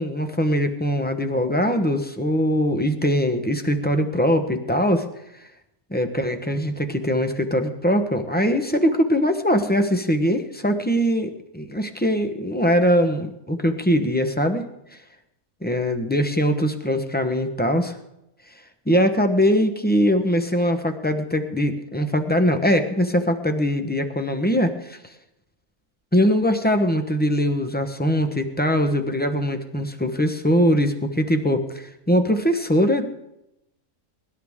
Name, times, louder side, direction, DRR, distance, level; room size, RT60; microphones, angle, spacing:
voice 1, 0.0-5.1 5.9-14.6 15.6-17.9 18.9-25.0 26.1-33.0, equal, 10° left, 7 dB, 0.8 m, -21 dB
24.0 x 11.5 x 3.6 m, 0.86 s
omnidirectional pair, 1.6 m